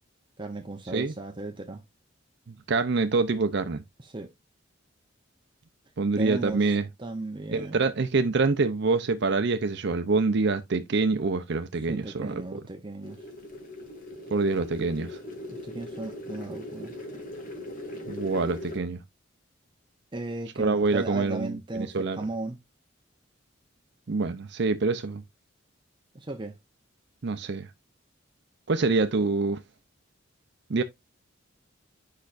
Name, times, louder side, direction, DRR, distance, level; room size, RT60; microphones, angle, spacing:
voice 1, 0.4-1.8 4.0-4.3 6.2-7.8 11.7-13.3 15.5-16.9 20.1-22.6 26.1-26.5, right 2 dB, 25° right, 0.7 m, -36 dB
voice 2, 2.7-3.8 6.0-6.8 7.5-12.4 14.3-15.2 18.1-19.0 20.6-22.2 24.1-25.2 27.2-27.7 28.7-29.6 30.7-30.8, right 3 dB, 60° right, 0.6 m, -26 dB
sound 1, 13.0-18.8, left 1 dB, 45° left, 2.1 m, -40 dB
8.5 x 5.7 x 2.5 m
head